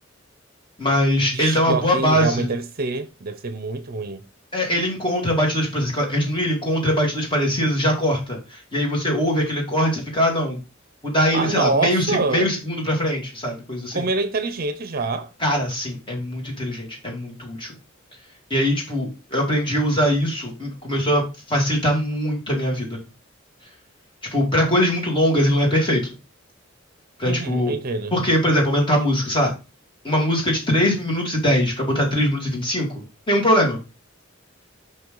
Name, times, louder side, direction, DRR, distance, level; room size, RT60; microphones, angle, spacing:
voice 1, 0.8-2.5 4.5-10.6 11.0-14.0 15.4-17.7 18.5-21.2 21.5-23.0 24.3-26.0 27.2-27.8 28.1-29.5 30.0-32.9 33.3-33.8, equal, 25° left, 2.4 m, -21 dB
voice 2, 1.3-4.3 11.3-12.5 13.9-15.3 27.2-28.1, right 3 dB, 45° right, 0.6 m, -26 dB
5.7 x 5.5 x 3.8 m
head